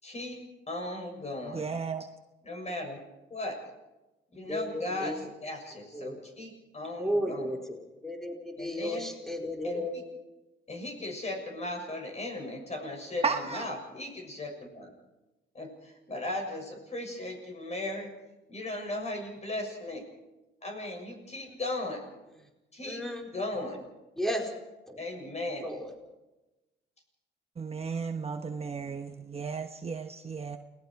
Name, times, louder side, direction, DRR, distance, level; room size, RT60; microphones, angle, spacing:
voice 1, 0.0-0.4 0.7-1.7 2.4-3.0 3.3-3.6 4.3-7.5 8.6-9.1 9.6-10.0 10.7-14.9 15.5-18.1 18.5-20.1 20.6-22.0 22.7-23.8 25.0-25.7, left 1 dB, 35° left, 3 dB, 7.0 m, -37 dB
voice 2, 1.5-2.1 13.2-13.6 27.6-30.6, right 5 dB, 30° right, 6 dB, 1.2 m, -34 dB
voice 3, 4.5-5.2 5.9-6.2 7.0-7.6 8.0-10.0 22.9-23.2 24.2-24.5 24.9-25.0 25.6-25.9, equal, ahead, 1 dB, 4.4 m, -33 dB
29.0 x 19.5 x 4.8 m, 1.0 s
cardioid pair, 90°, 20 cm